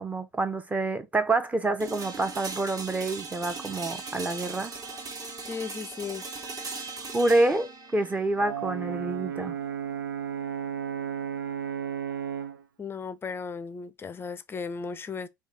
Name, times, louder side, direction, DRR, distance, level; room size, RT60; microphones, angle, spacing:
voice 1, 0.0-4.8 7.1-9.5, right 2 dB, 15° right, 0.8 m, -27 dB
sound 1, 1.8-11.7, right 4 dB, 35° right, 1.3 m, -40 dB
voice 2, 5.5-6.2 12.8-15.3, left 5 dB, 20° left, 0.5 m, -36 dB
Brass instrument, 8.4-12.6, right 8 dB, 75° right, 0.5 m, -33 dB
4.7 x 2.4 x 4.1 m
figure-of-eight pair, 70°, 11 cm